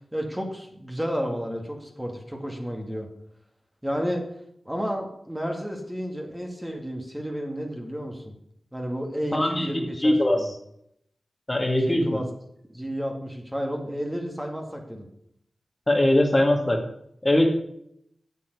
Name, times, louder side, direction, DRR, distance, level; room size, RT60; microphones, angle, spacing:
voice 1, 0.1-3.1 3.8-4.2 4.7-8.3 8.7-10.5 11.7-12.3 12.7-15.1, equal, 10° right, 1 dB, 2.2 m, -31 dB
voice 2, 9.3-10.4 11.5-12.2 15.9-16.8 17.2-17.6, left 1 dB, 25° left, 2 dB, 2.2 m, -21 dB
8.1 x 7.7 x 8.3 m, 0.74 s
wide cardioid pair, 65°, 0 cm